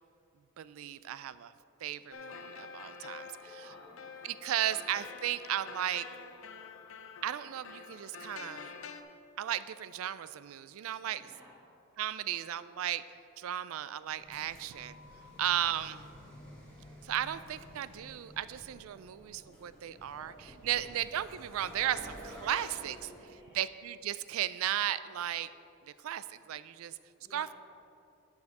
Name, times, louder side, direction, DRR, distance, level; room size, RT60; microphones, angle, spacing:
voice 1, 0.6-1.5 1.8-3.7 4.2-6.1 7.2-8.7 9.4-11.3 12.0-13.0 13.4-15.0 15.4-16.0 17.0-23.1 23.5-25.5 26.0-27.0 27.3-27.5, right 11 dB, 75° right, 15 dB, 0.3 m, -35 dB
sound 1, 2.1-9.0, left 5 dB, 65° left, 0.5 m, -47 dB
voice 2, 3.3-4.5 11.0-11.6 15.3-15.6 20.7-21.0 23.1-23.7 27.2-27.5, equal, 10° right, -8 dB, 2.3 m, -59 dB
sound 2, 14.0-23.3, equal, 5° left, 1.7 m, -51 dB
9.6 x 6.5 x 4.8 m, 2.6 s
head